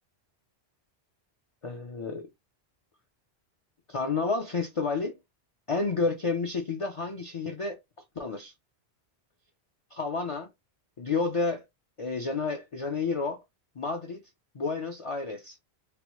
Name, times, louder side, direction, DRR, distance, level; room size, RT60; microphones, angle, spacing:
voice 1, 1.6-2.3 3.9-5.2 5.7-7.8 8.2-8.5 9.9-10.5 11.0-11.6 12.0-13.4 13.8-14.2 14.5-15.6, left 4 dB, 40° left, 0.5 m, -30 dB
3.0 x 2.2 x 2.9 m
omnidirectional pair, 1.1 m